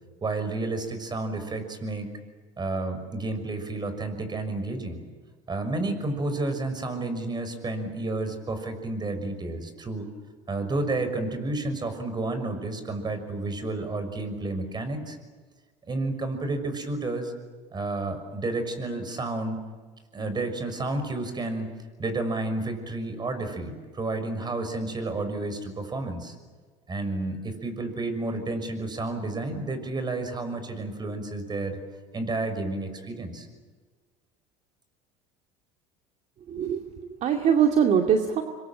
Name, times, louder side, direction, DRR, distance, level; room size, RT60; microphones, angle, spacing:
voice 1, 0.2-2.1 2.6-5.0 5.5-10.1 10.5-15.2 15.9-17.3 17.7-19.6 20.1-21.7 22.0-26.3 26.9-31.8 32.1-33.5, right 2 dB, 30° right, 8 dB, 6.2 m, -31 dB
voice 2, 36.5-38.4, right 7 dB, 50° right, 3 dB, 2.4 m, -23 dB
26.5 x 23.0 x 9.0 m, 1.4 s
supercardioid pair, 85°, 16 cm